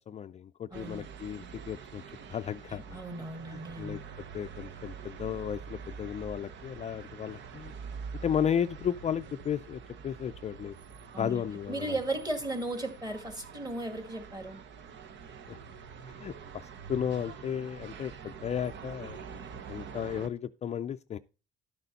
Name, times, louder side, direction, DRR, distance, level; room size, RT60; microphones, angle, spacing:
voice 1, 0.1-2.0 2.3-3.0 3.5-4.0 4.3-7.7 8.2-10.8 11.2-12.0 15.5-15.6 16.1-19.2 19.7-21.2, left 8 dB, 35° left, 0.4 m, -34 dB
voice 2, 0.7-1.1 2.9-4.0 11.1-14.6, right 2 dB, 20° right, 2.2 m, -36 dB
sound 1, 0.7-20.3, right 6 dB, 70° right, 1.0 m, -46 dB
12.0 x 6.7 x 4.0 m
cardioid pair, 130°, 20 cm